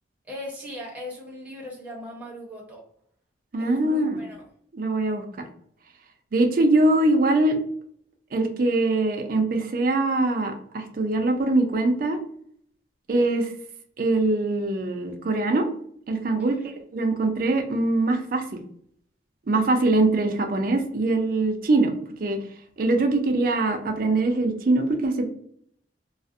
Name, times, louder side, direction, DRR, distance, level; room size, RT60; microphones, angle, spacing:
voice 1, 0.3-2.8 3.6-4.4 16.4-16.7, equal, 10° right, -4 dB, 0.7 m, -38 dB
voice 2, 3.5-4.2 4.7-5.2 6.3-7.6 8.3-12.2 13.1-13.5 14.0-15.6 16.1-16.6 16.9-18.6 19.5-21.9 22.2-22.4 22.8-25.3, right 2 dB, 45° right, 5 dB, 0.4 m, -22 dB
2.4 x 2.0 x 2.5 m, 0.65 s
head